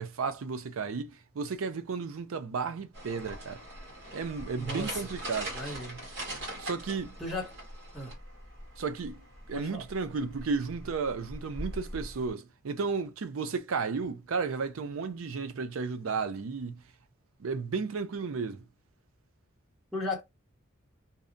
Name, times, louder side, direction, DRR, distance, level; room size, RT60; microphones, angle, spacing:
voice 1, 0.0-3.6 4.1-5.5 6.6-7.1 8.8-16.8 17.4-18.6, right 5 dB, 80° right, 0.5 m, -33 dB
sound 1, 2.9-12.3, right 1 dB, 55° right, 1.1 m, -42 dB
voice 2, 4.6-5.0 5.5-6.0 7.2-7.5 7.9-8.1 9.5-9.8 19.9-20.2, left 2 dB, ahead, 0.8 m, -35 dB
2.6 x 2.0 x 2.5 m
head